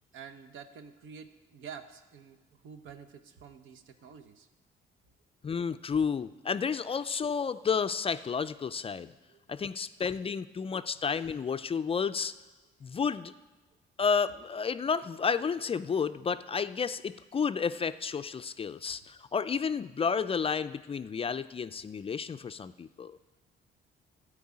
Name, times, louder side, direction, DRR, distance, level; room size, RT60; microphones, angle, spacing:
voice 1, 0.1-4.5 9.3-9.4 10.7-10.8, right 7 dB, 80° right, 8 dB, 0.9 m, -48 dB
voice 2, 5.4-9.1 9.5-12.3 12.8-13.3 14.0-23.2, left 6 dB, 30° left, 12 dB, 0.3 m, -31 dB
12.5 x 4.8 x 8.5 m, 1.2 s
cardioid pair, 90°, 20 cm